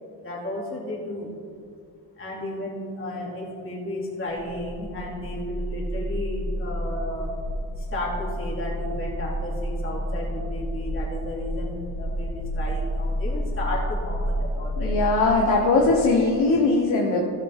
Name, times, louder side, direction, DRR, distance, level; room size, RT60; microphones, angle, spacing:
voice 1, 0.2-1.3 2.1-7.3 7.8-15.0, left 1 dB, 35° left, -4 dB, 2.9 m, -33 dB
sound 1, 4.3-15.3, equal, 65° right, 2.0 m, -30 dB
voice 2, 14.8-17.2, left 3 dB, 80° left, -1 dB, 1.4 m, -20 dB
16.0 x 6.9 x 3.7 m, 2.3 s
cardioid pair, 120°, 37 cm